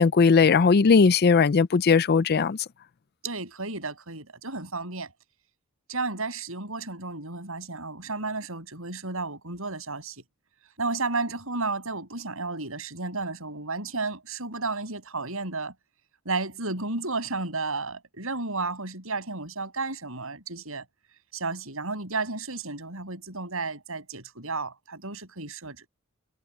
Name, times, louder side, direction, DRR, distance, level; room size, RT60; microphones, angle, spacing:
voice 1, 0.0-2.6, left 5 dB, 45° left, 0.5 m, -18 dB
voice 2, 3.2-5.1 5.9-10.2 10.8-15.7 16.3-20.8 21.3-25.8, right 3 dB, 70° right, 7.5 m, -32 dB
head